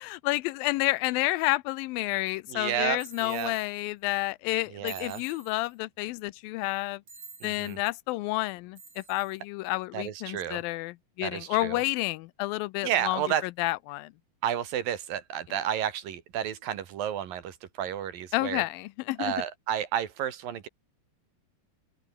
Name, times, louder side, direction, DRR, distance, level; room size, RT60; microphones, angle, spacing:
voice 1, 0.0-7.0 7.4-13.2 13.6-14.1 18.3-19.3, left 20 dB, 80° left, 2.3 m, -30 dB
voice 2, 2.5-3.5 4.7-5.2 7.4-7.8 9.9-10.6 11.2-11.8 12.8-13.5 14.4-18.6 19.2-20.7, right 10 dB, 70° right, 3.6 m, -31 dB
sound 1, 3.0-3.7 4.9-5.7 7.1-7.8 8.8-9.4, right 3 dB, 30° right, 7.0 m, -48 dB
open air
omnidirectional pair, 4.3 m